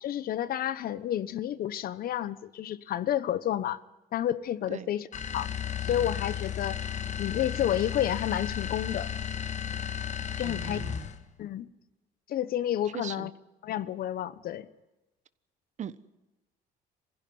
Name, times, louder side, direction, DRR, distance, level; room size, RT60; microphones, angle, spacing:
voice 1, 0.0-3.8 4.1-5.1 5.3-5.5 5.8-6.8 7.2-9.1 10.4-10.8 11.4-11.7 12.3-13.3 13.6-14.7, left 11 dB, 60° left, 1.1 m, -30 dB
sound 1, 5.1-11.3, left 8 dB, 45° left, 1.8 m, -34 dB
voice 2, 10.4-11.1 12.9-13.3 15.8-16.1, right 8 dB, 45° right, 1.2 m, -39 dB
24.0 x 16.0 x 9.5 m
cardioid pair, 110°, 17 cm